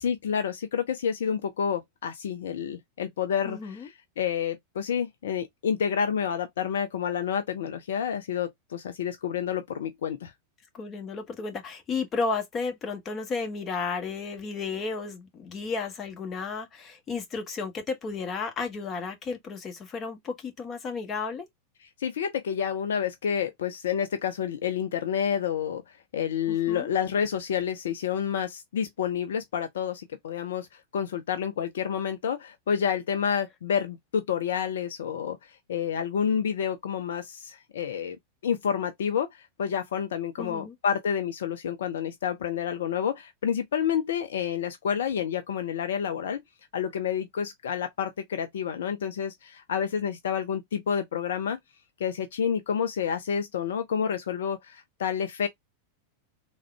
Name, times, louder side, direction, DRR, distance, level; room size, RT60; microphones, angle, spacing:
voice 1, 0.0-10.3 21.8-38.2 38.4-46.4 46.7-51.6 52.0-55.5, left 8 dB, 60° left, 0.4 m, -29 dB
voice 2, 3.4-3.9 10.7-21.4 26.5-26.9 40.4-40.7, left 4 dB, 25° left, 0.9 m, -33 dB
3.5 x 2.1 x 3.3 m
figure-of-eight pair, 90°, 0 cm